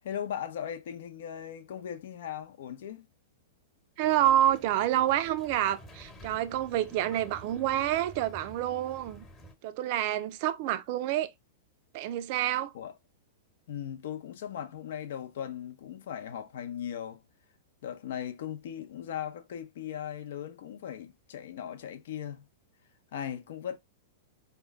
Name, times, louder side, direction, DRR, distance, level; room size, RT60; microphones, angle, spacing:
voice 1, 0.0-3.1 12.7-12.9 13.7-17.2 17.8-22.4 23.1-23.8, left 9 dB, 70° left, 0.7 m, -38 dB
sound 1, 4.0-9.6, equal, 20° left, 1.1 m, -50 dB
voice 2, 4.0-9.2 9.6-11.3 11.9-12.7, right 12 dB, 50° right, 0.5 m, -28 dB
4.3 x 2.2 x 3.5 m
hypercardioid pair, 125°, 0 cm